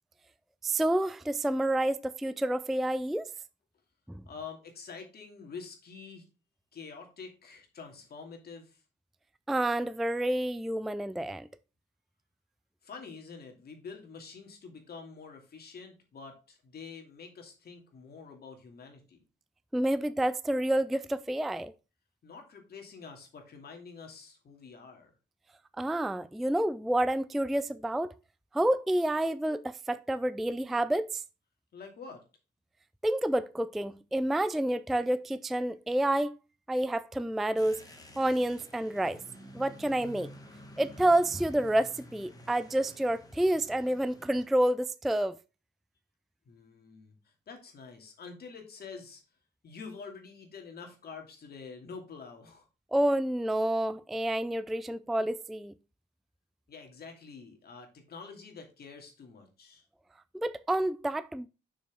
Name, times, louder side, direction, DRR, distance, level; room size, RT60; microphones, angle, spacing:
voice 1, 0.6-3.3 4.1-4.2 9.5-11.5 19.7-21.7 25.8-28.1 28.5-31.2 33.0-36.4 36.7-37.8 38.2-39.2 39.5-40.3 40.8-45.4 52.9-55.7 60.3-61.5, right 1 dB, ahead, 0.3 m, -29 dB
voice 2, 4.3-6.3 6.7-8.8 12.8-19.2 22.2-25.1 31.7-32.2 46.5-49.2 49.6-52.7 56.7-59.8, left 5 dB, 50° left, 2.5 m, -47 dB
sound 1, 37.6-44.5, equal, 20° left, 1.8 m, -51 dB
6.7 x 6.3 x 3.5 m
cardioid pair, 90°, 20 cm